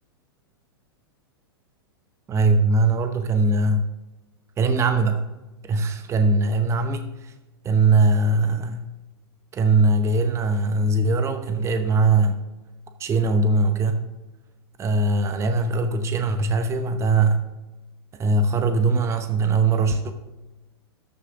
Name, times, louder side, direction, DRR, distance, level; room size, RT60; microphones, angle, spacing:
voice 1, 2.3-3.9 4.6-5.3 5.6-7.3 7.6-8.9 9.5-12.4 13.0-14.0 14.8-17.4 18.2-20.1, right 3 dB, 20° right, 8 dB, 0.8 m, -21 dB
13.5 x 6.6 x 3.7 m, 1.1 s
hypercardioid pair, 105°, 13 cm